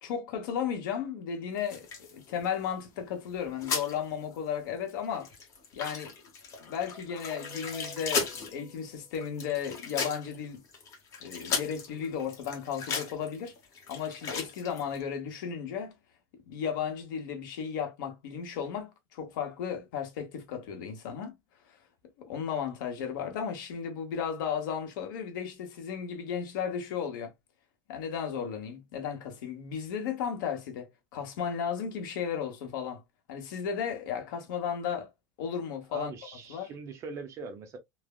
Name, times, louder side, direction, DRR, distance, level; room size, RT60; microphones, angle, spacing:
voice 1, 0.0-5.3 5.7-6.1 6.6-10.6 11.2-13.5 13.9-15.9 16.5-21.3 22.2-27.3 27.9-33.0 33.3-35.1 35.4-36.1 36.5-36.7, left 7 dB, 85° left, 1.1 m, -34 dB
sound 1, 1.6-3.0 3.3-4.0 4.3-4.4 4.8-15.0, left 5 dB, 30° left, 0.8 m, -37 dB
Guitar, 6.7-9.5, left 3 dB, 15° right, 1.1 m, -50 dB
voice 2, 35.9-37.8, right 4 dB, 30° right, 0.6 m, -41 dB
3.3 x 2.1 x 2.3 m
cardioid pair, 175°, 10 cm